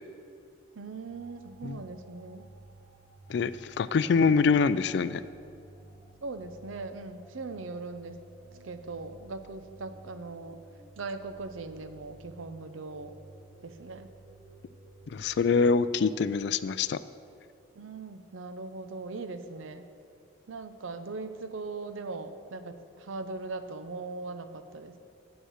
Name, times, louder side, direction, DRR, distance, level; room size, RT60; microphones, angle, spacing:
voice 1, 0.7-2.5 6.2-8.2 8.6-10.6 11.0-13.1 13.6-14.1 17.7-19.9 20.5-25.0, right 3 dB, 85° right, 10 dB, 0.7 m, -40 dB
sound 1, 1.1-17.4, right 2 dB, 60° right, 1.6 m, -54 dB
voice 2, 3.8-5.2 15.1-17.0, left 5 dB, 55° left, 15 dB, 0.3 m, -24 dB
8.1 x 6.4 x 8.0 m, 2.4 s
head